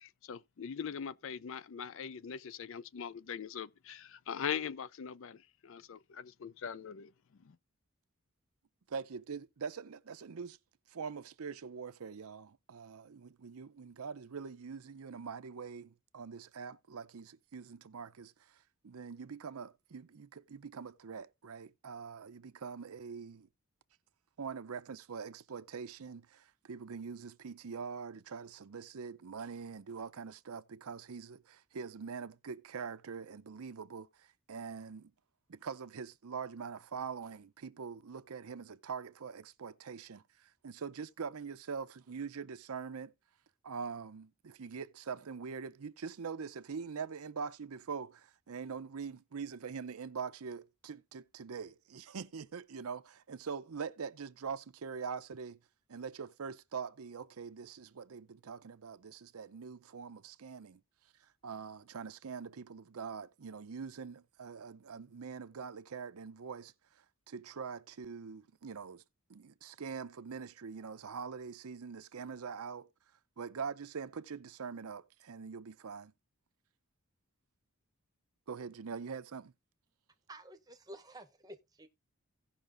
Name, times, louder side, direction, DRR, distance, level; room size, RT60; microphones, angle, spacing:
voice 1, 0.0-7.1 7.4-7.6, left 7 dB, 60° left, 0.4 m, -41 dB
voice 2, 8.9-10.6 10.9-23.5 24.4-35.1 35.5-43.1 43.6-55.6 55.9-60.8 61.4-69.0 69.3-72.9 73.4-76.1 78.5-79.5, right 5 dB, 80° right, 0.6 m, -44 dB
voice 3, 80.3-81.9, right 1 dB, 15° right, 0.8 m, -51 dB
17.0 x 5.8 x 2.5 m
head